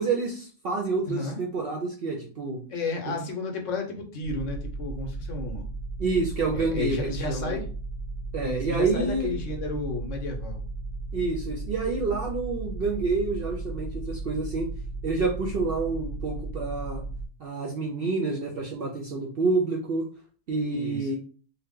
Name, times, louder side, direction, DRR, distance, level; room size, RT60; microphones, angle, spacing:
voice 1, 0.0-2.6 3.1-3.2 6.0-7.6 8.3-9.4 11.1-14.7 15.0-17.0 17.4-20.0 20.5-21.2, right 3 dB, 65° right, 0 dB, 0.6 m, -28 dB
voice 2, 1.1-1.4 2.7-5.6 6.5-7.7 8.4-10.6 20.7-21.2, left 3 dB, 70° left, 2 dB, 1.0 m, -32 dB
sound 1, 4.2-17.3, right 3 dB, 45° left, 0.8 m, -35 dB
2.8 x 2.0 x 3.5 m, 0.41 s
omnidirectional pair, 1.4 m